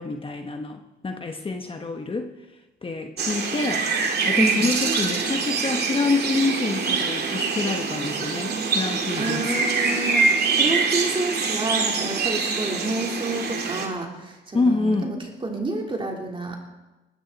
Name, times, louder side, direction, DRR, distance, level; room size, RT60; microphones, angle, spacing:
voice 1, 0.0-2.3 2.8-3.9 4.2-9.6 14.5-15.2, left 3 dB, 25° left, 4 dB, 1.1 m, -27 dB
sound 1, 3.2-13.9, right 4 dB, 55° right, 2.4 m, -24 dB
voice 2, 9.2-15.2 15.4-16.6, right 2 dB, 25° right, 0 dB, 3.5 m, -29 dB
19.0 x 13.5 x 4.1 m, 1.1 s
cardioid pair, 90°, 20 cm